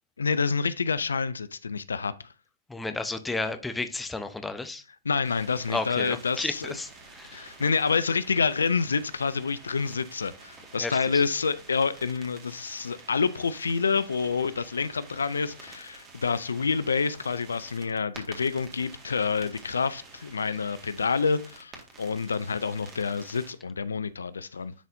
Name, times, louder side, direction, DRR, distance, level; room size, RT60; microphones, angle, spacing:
voice 1, 0.2-2.3 5.1-6.7 7.3-24.7, left 5 dB, 75° left, 0.4 m, -28 dB
voice 2, 2.7-4.8 5.7-7.5 10.8-11.2, left 3 dB, 5° left, 0.6 m, -33 dB
sound 1, 5.2-23.5, right 3 dB, 25° right, 1.8 m, -49 dB
10.0 x 4.1 x 2.6 m
figure-of-eight pair, 110°, 0 cm